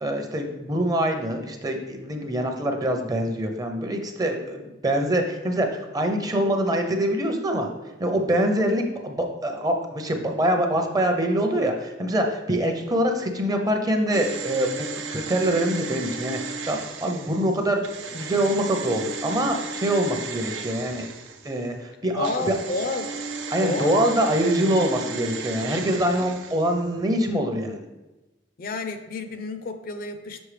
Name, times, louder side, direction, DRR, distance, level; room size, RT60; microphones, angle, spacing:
voice 1, 0.0-7.7 8.0-17.8 18.1-21.1 21.4-22.5 23.5-27.8, right 1 dB, 20° right, 4 dB, 0.6 m, -24 dB
sound 1, 14.1-21.7 22.2-26.9 27.2-27.3, right 4 dB, 90° right, 0.6 m, -35 dB
voice 2, 22.1-23.1 23.6-24.0 24.6-24.7 26.1-26.3 26.6-26.8 28.6-30.4, left 3 dB, 50° left, 8 dB, 0.5 m, -30 dB
6.2 x 5.2 x 3.3 m, 1.1 s
head